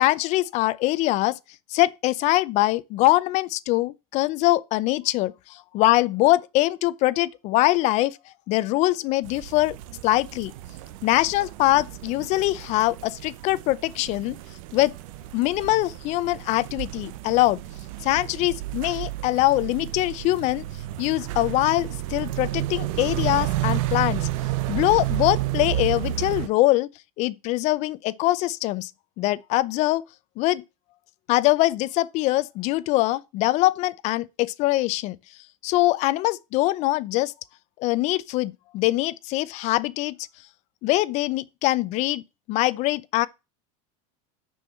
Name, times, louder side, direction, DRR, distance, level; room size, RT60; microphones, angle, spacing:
voice 1, 0.0-9.8 10.0-10.5 11.0-14.9 15.3-17.6 18.0-24.3 24.7-26.9 27.2-28.9 29.2-30.0 30.4-30.6 31.3-37.3 37.8-40.5 40.8-43.3, left 18 dB, 40° left, 0.6 m, -23 dB
sound 1, 9.2-26.5, right 15 dB, 75° right, 0.9 m, -31 dB
6.7 x 6.2 x 7.4 m
cardioid pair, 165°, 18 cm